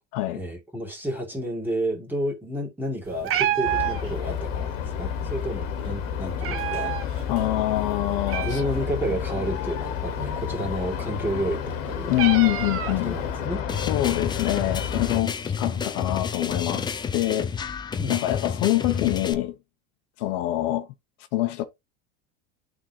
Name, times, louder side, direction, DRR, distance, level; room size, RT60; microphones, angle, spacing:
voice 1, 0.3-6.9 8.4-12.2 12.9-13.6 18.0-18.2, equal, 5° right, 2.3 m, -31 dB
Meow, 3.0-13.5, right 11 dB, 35° right, 0.8 m, -33 dB
sound 1, 3.6-15.2, left 8 dB, 90° left, 1.3 m, -31 dB
voice 2, 7.3-8.6 12.1-13.1 13.9-17.5 18.1-19.6 20.2-20.9 21.3-21.6, left 16 dB, 70° left, 0.9 m, -25 dB
sound 2, 13.7-19.3, left 6 dB, 10° left, 0.4 m, -30 dB
11.0 x 3.8 x 2.8 m
supercardioid pair, 140°, 38 cm